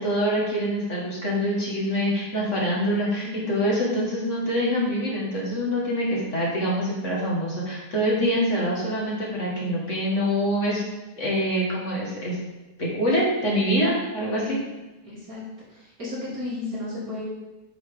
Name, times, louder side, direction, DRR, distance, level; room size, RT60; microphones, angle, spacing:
voice 1, 0.0-10.8 11.2-12.4 12.8-14.6, equal, 45° left, -4 dB, 2.0 m, -25 dB
voice 2, 15.0-15.4 15.7-17.2, left 2 dB, 55° right, -8 dB, 3.6 m, -34 dB
8.4 x 5.9 x 3.6 m, 1.1 s
omnidirectional pair, 1.8 m